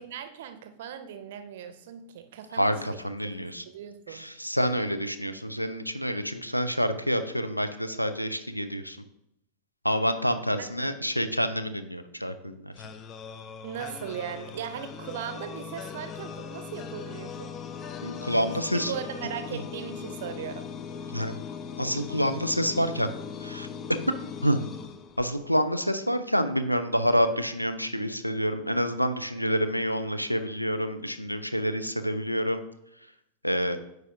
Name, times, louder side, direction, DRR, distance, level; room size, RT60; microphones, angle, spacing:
voice 1, 0.0-3.0 3.4-4.2 10.6-11.1 13.6-17.5 18.4-20.7, right 9 dB, 55° right, 9 dB, 0.6 m, -38 dB
voice 2, 2.5-3.6 4.1-9.0 9.8-12.7 18.0-18.9 19.5-19.6 21.1-21.3 21.8-23.1 23.4-23.7 24.4-24.6 25.2-32.6 33.4-33.8, equal, 90° left, 10 dB, 0.4 m, -28 dB
sound 1, 12.8-25.7, left 7 dB, 30° left, 0.4 m, -39 dB
9.2 x 4.7 x 2.5 m, 0.79 s
figure-of-eight pair, 90°, 0 cm